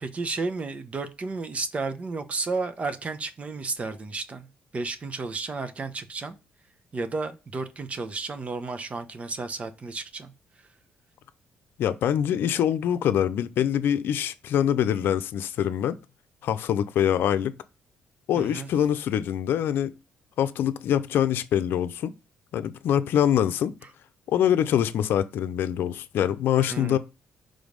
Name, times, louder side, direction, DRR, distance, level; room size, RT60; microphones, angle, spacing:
voice 1, 0.0-4.5 4.7-6.4 6.9-10.3 18.3-18.7 26.6-27.0, right 3 dB, 35° right, 0.9 m, -32 dB
voice 2, 11.8-16.0 16.4-17.5 18.3-19.9 20.4-22.1 22.5-23.7 24.3-27.0, left 10 dB, 75° left, 0.6 m, -24 dB
5.2 x 3.9 x 5.2 m
cardioid pair, 90°, 4 cm